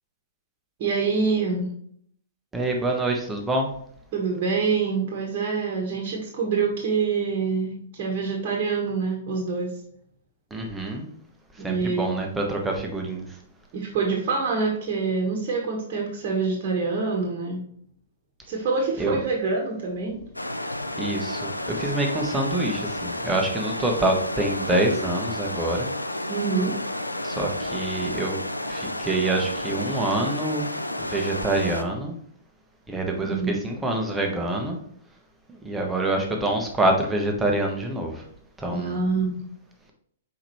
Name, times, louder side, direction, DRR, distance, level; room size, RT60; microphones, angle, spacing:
voice 1, 0.8-1.7 4.1-9.7 11.6-12.2 13.7-17.6 18.5-20.2 26.3-26.8 33.2-33.6 38.7-39.4, right 4 dB, 40° right, 0 dB, 1.4 m, -26 dB
voice 2, 2.5-3.7 10.5-11.1 11.6-13.3 19.0-19.2 21.0-25.9 27.2-28.4 28.7-30.7 31.0-32.2 32.9-34.8 35.6-38.2 38.6-39.0, right 2 dB, 10° right, 1 dB, 1.2 m, -26 dB
sound 1, 20.3-31.8, left 1 dB, 85° left, 0.5 m, -31 dB
6.3 x 4.8 x 3.1 m, 0.65 s
figure-of-eight pair, 110°, 0 cm